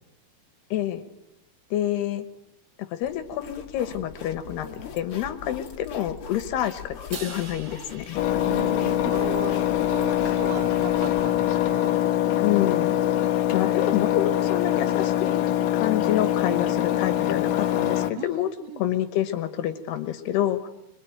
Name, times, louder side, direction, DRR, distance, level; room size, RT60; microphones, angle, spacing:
voice 1, 0.7-1.0 1.7-2.2 2.9-4.7 4.9-8.2 12.4-12.9 13.5-15.4 15.7-18.5 18.8-20.7, left 12 dB, 70° left, 10 dB, 2.8 m, -27 dB
sound 1, 3.0-11.8, left 7 dB, 50° left, 1.7 m, -42 dB
Crash cymbal, 7.1-9.5, right 5 dB, 45° right, 3.2 m, -43 dB
Engine, 8.2-18.1, left 12 dB, 85° left, 1.8 m, -23 dB
voice 2, 8.4-11.9 16.5-16.6 18.2-18.3 18.6-18.8, right 5 dB, 80° right, 5 dB, 4.6 m, -36 dB
26.0 x 23.0 x 9.2 m, 0.90 s
omnidirectional pair, 5.5 m